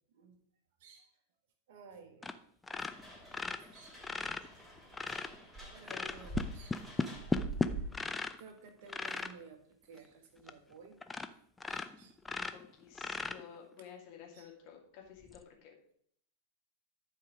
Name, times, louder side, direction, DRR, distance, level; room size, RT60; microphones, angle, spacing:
voice 1, 1.7-2.3 2.8-2.9 3.2-3.3 3.7-4.0 5.7-6.8 7.3-7.4 8.4-9.6 9.9-11.0 11.7-12.5 14.3-14.5, right 5 dB, 50° right, 5 dB, 1.5 m, -55 dB
sound 1, 2.2-2.4 2.6-5.4 5.9-8.4 8.9-9.4 10.0-10.1 10.5-10.6 11.0-11.3 11.6-13.7 15.3-15.4, left 3 dB, 10° left, 0.5 m, -36 dB
sound 2, 2.9-8.1, right 2 dB, 5° right, 2.9 m, -45 dB
voice 2, 12.5-15.8, left 8 dB, 45° left, 1 dB, 2.4 m, -52 dB
11.0 x 4.7 x 5.0 m, 0.66 s
figure-of-eight pair, 90°, 0 cm